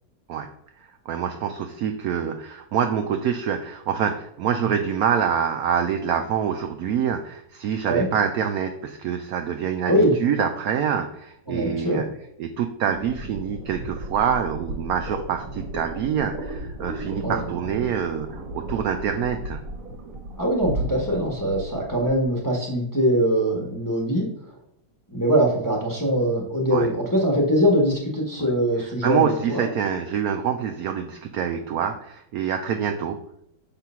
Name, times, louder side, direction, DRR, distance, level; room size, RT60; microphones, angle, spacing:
voice 1, 1.1-12.0 12.4-19.6 26.7-26.9 28.4-28.5 29.0-33.2, right 8 dB, 70° right, 6 dB, 0.8 m, -26 dB
voice 2, 9.8-10.2 11.5-12.1 17.2-17.4 20.4-24.3 25.1-29.7, equal, 15° left, -2 dB, 1.1 m, -22 dB
sound 1, 12.9-22.3, right 1 dB, 50° right, 1.5 m, -35 dB
6.0 x 3.8 x 5.5 m, 0.76 s
omnidirectional pair, 1.9 m